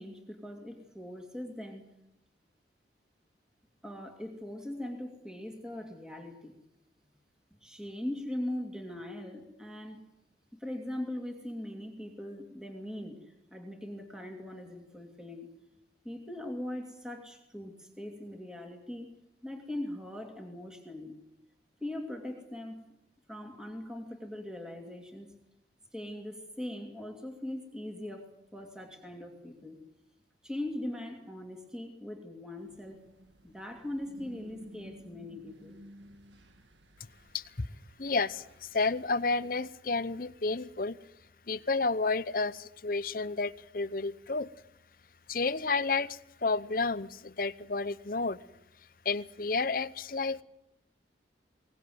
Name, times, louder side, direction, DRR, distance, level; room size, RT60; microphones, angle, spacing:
voice 1, 0.0-1.9 3.8-6.5 7.6-10.0 10.5-15.5 16.0-19.1 19.4-21.1 21.8-22.8 23.3-25.4 25.9-29.8 30.4-33.1 33.4-35.8, left 1 dB, 5° right, 3 dB, 2.8 m, -40 dB
sound 1, 32.6-39.1, equal, 90° right, 1.9 m, -54 dB
voice 2, 38.0-41.0 41.5-44.5 45.3-48.4 49.0-50.4, left 3 dB, 50° left, 15 dB, 0.8 m, -31 dB
22.5 x 19.0 x 9.4 m, 0.82 s
head